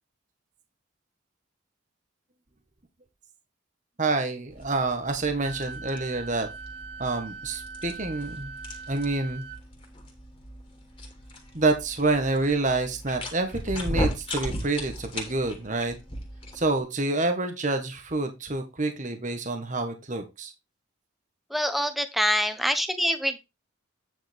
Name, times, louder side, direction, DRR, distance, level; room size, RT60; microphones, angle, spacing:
voice 1, 4.0-6.5 7.0-8.5 8.9-9.4 11.5-16.0 16.5-20.5, right 3 dB, 35° right, 5 dB, 1.6 m, -27 dB
sound 1, 4.5-16.8, equal, 25° left, 2.8 m, -37 dB
Wind instrument woodwind instrument, 5.4-9.6, right 4 dB, 65° right, 2.0 m, -41 dB
voice 2, 21.5-23.4, equal, ahead, 9 dB, 1.2 m, -25 dB
9.5 x 7.1 x 3.5 m, 0.24 s
head